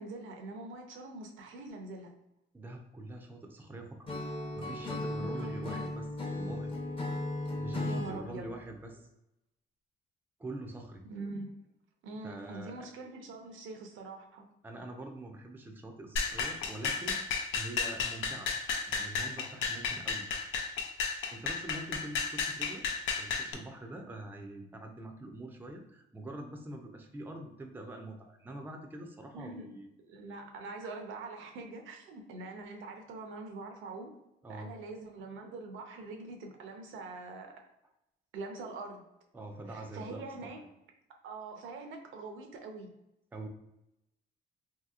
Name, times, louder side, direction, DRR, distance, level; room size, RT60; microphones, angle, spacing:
voice 1, 0.0-2.1 5.2-5.8 7.8-8.5 11.1-11.5 12.0-14.4 29.3-29.7 30.1-34.1 34.5-37.5 38.3-39.1 39.7-40.6 41.2-42.9, right 3 dB, 80° right, 4 dB, 0.6 m, -44 dB
voice 2, 2.5-4.1 4.5-6.7 7.6-9.1 10.4-11.0 12.2-12.9 14.6-17.2 17.5-18.5 18.9-20.3 21.3-22.9 23.2-29.9 34.4-34.7 39.3-40.5 43.3-43.5, right 1 dB, 10° right, 3 dB, 0.4 m, -44 dB
Acoustic guitar / Strum, 4.1-8.2, left 2 dB, 25° left, 0.7 m, -36 dB
sound 1, 16.2-23.5, left 5 dB, 80° left, 0.5 m, -33 dB
2.9 x 2.8 x 2.4 m, 0.89 s
cardioid pair, 90°, 20 cm